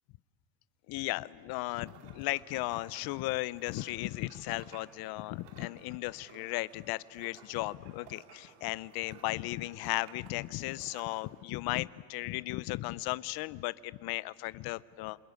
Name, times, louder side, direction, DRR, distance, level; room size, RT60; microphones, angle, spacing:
voice 1, 0.9-15.2, left 19 dB, 60° left, 19 dB, 0.6 m, -36 dB
sound 1, 1.5-11.4, right 8 dB, 80° right, 2.7 m, -58 dB
28.0 x 22.0 x 9.6 m, 2.3 s
supercardioid pair, 120°, 43 cm